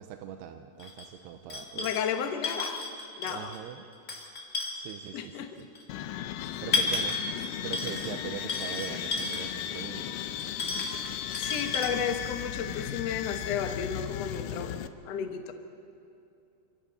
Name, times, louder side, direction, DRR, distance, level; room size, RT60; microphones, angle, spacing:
voice 1, 0.0-1.9 3.2-3.9 4.7-5.7 6.6-7.2 7.6-10.4, right 10 dB, 90° right, 6 dB, 2.9 m, -41 dB
sound 1, 0.8-1.0 1.5-2.1 2.4-3.6 3.9-5.0 5.7-5.8 6.4-7.3 7.7-8.2 8.5-9.5 10.4-11.9, left 3 dB, 25° left, 1.8 m, -32 dB
voice 2, 1.7-2.8 3.2-3.5 5.1-5.5 7.6-7.7 11.3-14.7 15.0-15.5, left 7 dB, 65° left, 5 dB, 1.6 m, -33 dB
sound 2, 5.9-14.9, left 11 dB, 85° left, 1.9 m, -36 dB
29.0 x 26.0 x 4.2 m, 2.6 s
omnidirectional pair, 4.7 m